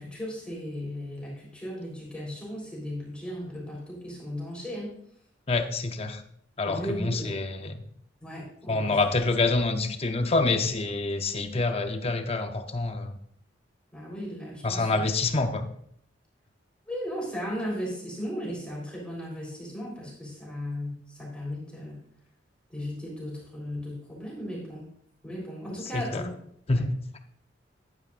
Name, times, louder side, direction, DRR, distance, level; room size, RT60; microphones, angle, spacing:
voice 1, 0.0-4.9 6.7-7.3 8.2-9.0 13.9-14.9 16.9-22.0 22.7-24.9 25.2-26.4 26.8-26.9, equal, 5° left, -5 dB, 3.7 m, -36 dB
voice 2, 5.5-6.2 6.6-7.8 8.7-13.2 14.6-15.6 25.9-26.3 26.7-26.9, left 3 dB, 35° left, 7 dB, 0.7 m, -27 dB
11.0 x 9.2 x 2.5 m, 0.67 s
head